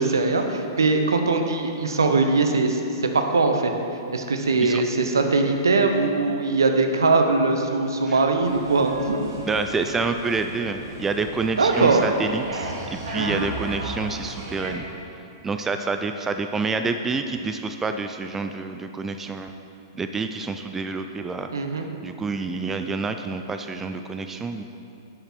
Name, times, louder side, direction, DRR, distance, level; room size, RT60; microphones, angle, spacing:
voice 1, 0.0-2.8 3.1-3.7 4.1-9.3 11.6-12.0 13.1-13.5 21.5-21.9, right 3 dB, 80° right, 5 dB, 0.9 m, -21 dB
sound 1, 8.4-14.7, right 2 dB, 60° right, 2.1 m, -35 dB
voice 2, 9.5-14.8 15.4-19.5 19.9-21.5 22.0-24.6, right 4 dB, 15° right, 7 dB, 0.4 m, -28 dB
10.5 x 5.8 x 4.4 m, 2.7 s
hypercardioid pair, 110°, 2 cm